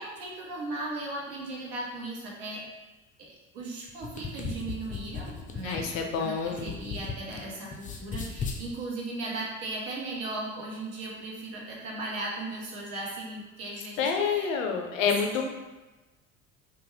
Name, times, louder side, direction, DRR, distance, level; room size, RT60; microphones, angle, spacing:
voice 1, 0.0-2.6 3.2-14.5 14.9-15.1, right 2 dB, 70° right, -3 dB, 0.9 m, -37 dB
sound 1, 3.9-7.4 7.7-8.6, left 5 dB, 20° left, 0.4 m, -37 dB
voice 2, 5.6-6.7 14.0-15.4, left 6 dB, 80° left, 3 dB, 0.5 m, -28 dB
2.5 x 2.3 x 3.0 m, 1.2 s
hypercardioid pair, 60°, 39 cm